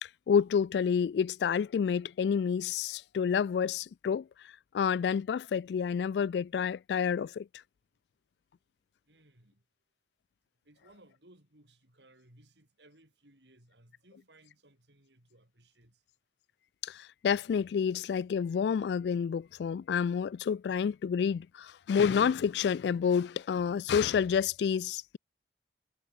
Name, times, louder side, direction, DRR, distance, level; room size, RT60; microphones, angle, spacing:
voice 1, 0.0-7.5 16.8-25.2, left 7 dB, 70° left, 0.3 m, -29 dB
voice 2, 9.0-9.7 10.6-16.0, right 1 dB, 80° right, 7.6 m, -62 dB
head